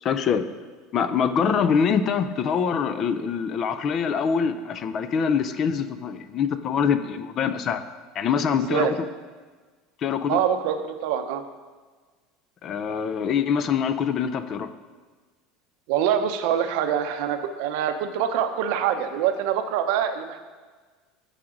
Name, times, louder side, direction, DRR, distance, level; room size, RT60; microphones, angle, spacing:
voice 1, 0.0-0.4 0.9-7.8 8.2-9.1 10.0-10.4 12.6-14.7, left 6 dB, 30° left, 11 dB, 0.4 m, -24 dB
voice 2, 8.5-8.9 10.3-11.4 15.9-20.4, right 9 dB, 65° right, 8 dB, 0.7 m, -25 dB
14.5 x 4.9 x 3.8 m, 1.4 s
cardioid pair, 175°, 0 cm